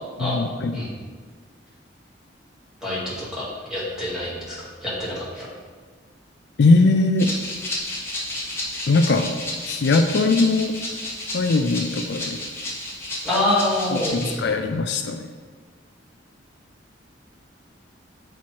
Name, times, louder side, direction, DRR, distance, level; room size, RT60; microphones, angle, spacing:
voice 1, 0.2-0.7 6.6-7.3 8.9-9.3 9.7-10.7 11.3-12.4 13.9-15.3, left 3 dB, 60° left, 6 dB, 0.4 m, -20 dB
voice 2, 2.8-4.6 4.8-5.5 13.2-14.5, left 1 dB, 5° right, -8 dB, 2.2 m, -26 dB
Rattle (instrument), 7.2-14.4, left 1 dB, 15° left, 1.3 m, -31 dB
7.1 x 4.6 x 4.5 m, 1.5 s
head